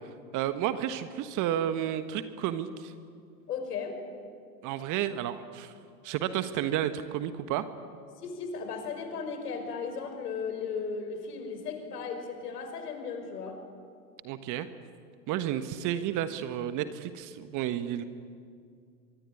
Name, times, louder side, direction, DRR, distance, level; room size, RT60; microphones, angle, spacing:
voice 1, 0.3-2.9 4.6-5.7 6.0-7.7 14.2-14.7 15.3-18.0, right 11 dB, 40° right, 10 dB, 1.5 m, -31 dB
voice 2, 3.5-4.0 8.2-13.6, left 5 dB, 70° left, 6 dB, 5.5 m, -36 dB
24.0 x 23.5 x 9.8 m, 2.3 s
hypercardioid pair, 100°, 49 cm